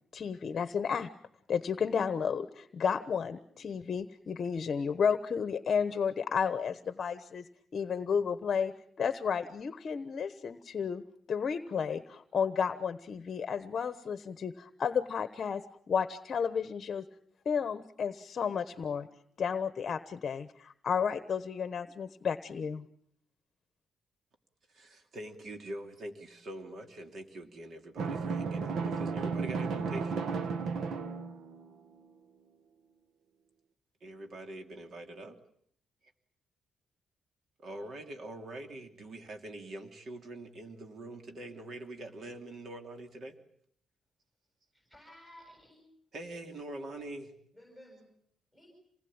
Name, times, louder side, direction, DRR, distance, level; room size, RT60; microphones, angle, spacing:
voice 1, 0.1-1.1 1.5-7.4 7.7-8.7 9.0-11.0 11.3-17.0 17.4-19.1 19.4-22.8, left 6 dB, 40° left, 10 dB, 1.1 m, -32 dB
voice 2, 24.7-30.3 34.0-35.4 37.6-43.4 46.1-47.3, right 1 dB, 45° right, 5 dB, 2.9 m, -44 dB
Drum, 28.0-31.7, right 5 dB, 65° right, 1.5 m, -34 dB
voice 3, 44.7-45.8 47.6-48.1 48.5-48.7, equal, 5° right, 0 dB, 7.9 m, -55 dB
28.0 x 20.0 x 8.8 m, 0.68 s
cardioid pair, 160°, 0 cm